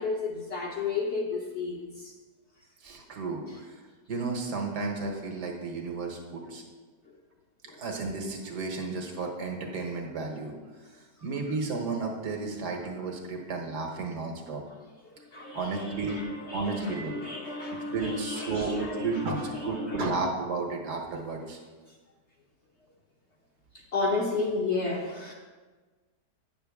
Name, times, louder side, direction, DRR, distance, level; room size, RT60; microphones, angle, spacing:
voice 1, 0.0-2.1 7.7-7.8 15.1-20.1 23.7-25.3, left 3 dB, 55° left, 0 dB, 0.9 m, -33 dB
voice 2, 2.8-3.8 4.1-6.6 7.8-10.5 10.9-14.6 15.5-16.2 16.5-17.1 17.9-21.6, right 3 dB, 75° right, 2 dB, 1.7 m, -33 dB
8.9 x 6.7 x 3.5 m, 1.3 s
omnidirectional pair, 1.8 m